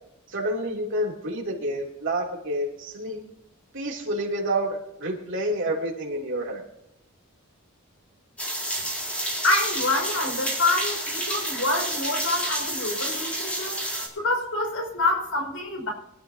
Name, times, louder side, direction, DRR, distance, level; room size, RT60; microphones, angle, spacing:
voice 1, 0.3-3.2 3.7-6.6, right 1 dB, 60° right, -1 dB, 3.2 m, -29 dB
sound 1, 8.4-14.1, right 1 dB, 5° left, 3.9 m, -29 dB
voice 2, 9.2-15.9, left 2 dB, 80° left, 1 dB, 5.6 m, -27 dB
24.0 x 12.5 x 2.9 m, 0.77 s
head